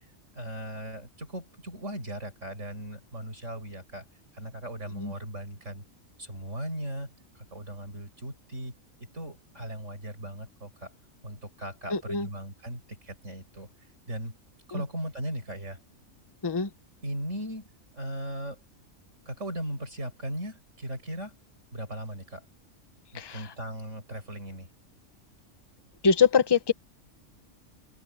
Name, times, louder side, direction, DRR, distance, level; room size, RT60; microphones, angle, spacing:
voice 1, 0.3-4.0 4.3-5.8 6.2-8.7 9.1-10.9 11.2-13.7 14.1-14.4 14.7-15.8 17.0-17.7 18.0-18.6 19.2-21.4 21.7-22.4 23.1-24.7, right 1 dB, 60° right, 8.4 m, -38 dB
voice 2, 11.9-12.3 14.7-14.8 16.4-16.7 23.1-23.4 26.0-26.7, left 5 dB, 20° left, 0.8 m, -23 dB
open air
omnidirectional pair, 1.4 m